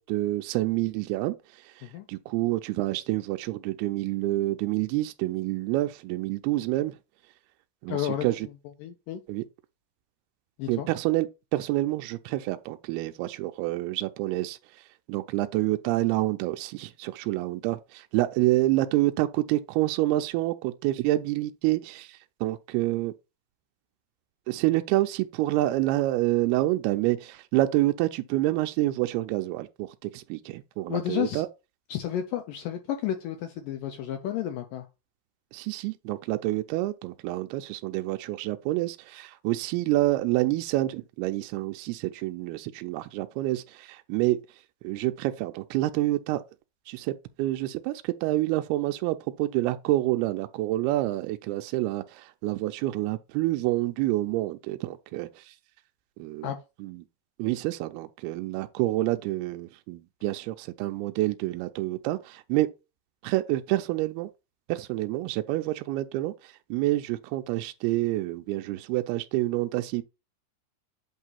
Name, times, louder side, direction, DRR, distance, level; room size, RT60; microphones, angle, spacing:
voice 1, 0.0-1.4 1.7-7.0 7.8-8.5 9.3-9.4 10.7-14.6 15.1-23.1 24.5-31.5 35.5-44.4 44.8-46.4 46.9-55.5 56.2-56.5 56.8-57.0 57.4-62.7 63.2-64.3 64.7-70.0, right 17 dB, 85° right, 2.4 m, -28 dB
voice 2, 7.9-8.5 8.8-9.2 10.6-10.9 30.8-31.4 31.9-34.9 56.4-56.6, left 11 dB, 80° left, 2.0 m, -32 dB
8.0 x 2.7 x 5.6 m
omnidirectional pair, 4.7 m